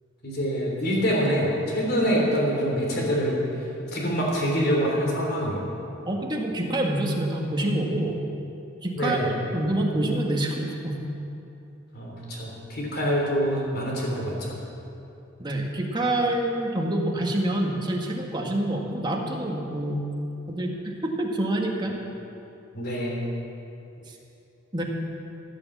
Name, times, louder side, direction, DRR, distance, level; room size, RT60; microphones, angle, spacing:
voice 1, 0.2-3.4 3.9-5.6 9.0-9.3 11.9-14.5 22.7-23.2, equal, 50° left, -2 dB, 3.6 m, -25 dB
voice 2, 6.1-8.2 8.8-9.2 9.5-11.0 15.4-20.0 20.5-21.9 24.7-24.8, right 1 dB, 20° right, 0 dB, 1.7 m, -26 dB
15.5 x 10.5 x 7.4 m, 2.8 s
head